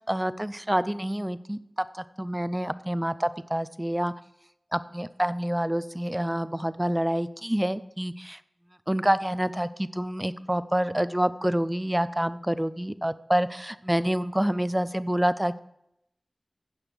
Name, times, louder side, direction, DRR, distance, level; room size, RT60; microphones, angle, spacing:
voice 1, 0.1-1.6 1.9-4.1 4.7-8.4 8.9-15.6, equal, 10° right, 15 dB, 0.4 m, -27 dB
16.0 x 6.3 x 3.4 m, 0.81 s
wide cardioid pair, 75°, 0 cm